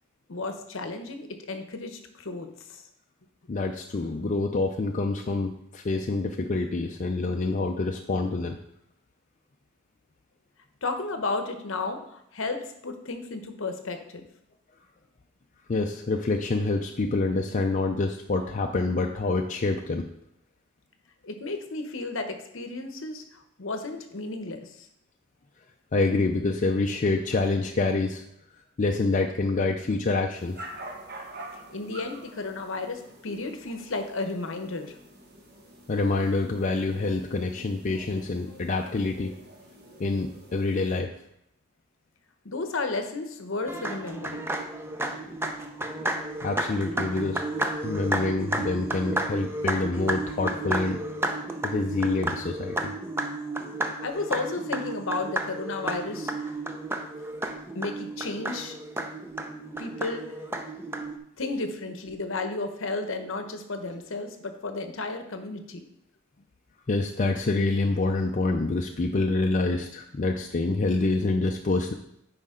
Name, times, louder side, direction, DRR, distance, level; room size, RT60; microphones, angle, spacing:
voice 1, 0.3-2.8 10.8-14.2 21.2-24.9 31.7-35.0 42.4-44.6 54.0-56.6 57.7-58.8 59.8-60.3 61.4-65.9, left 3 dB, 65° left, 6 dB, 0.9 m, -33 dB
voice 2, 3.5-8.6 15.7-20.1 25.9-28.2 28.8-30.6 35.9-39.4 40.0-41.1 46.4-47.4 47.8-51.0 51.6-52.9 66.9-71.9, left 3 dB, 35° left, 3 dB, 0.5 m, -26 dB
sound 1, 30.3-41.0, right 1 dB, 50° right, 1.4 m, -47 dB
sound 2, 43.7-61.2, right 2 dB, 10° right, 0.5 m, -32 dB
9.7 x 4.9 x 3.7 m, 0.76 s
head